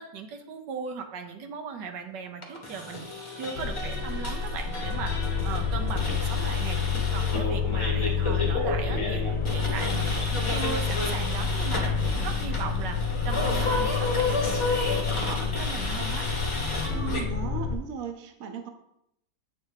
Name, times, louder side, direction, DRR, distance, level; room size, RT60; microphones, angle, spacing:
voice 1, 0.0-3.0 3.4-5.1 5.4-6.8 7.1-9.2 9.5-13.0 13.2-16.3, right 6 dB, 85° right, 6 dB, 1.4 m, -37 dB
sound 1, 2.4-17.2, left 2 dB, 25° left, 0.8 m, -32 dB
sound 2, 3.5-17.8, left 5 dB, 60° left, 0.8 m, -29 dB
voice 2, 16.9-18.7, right 6 dB, 60° right, 6 dB, 1.1 m, -36 dB
8.1 x 3.4 x 4.8 m, 0.76 s
omnidirectional pair, 1.9 m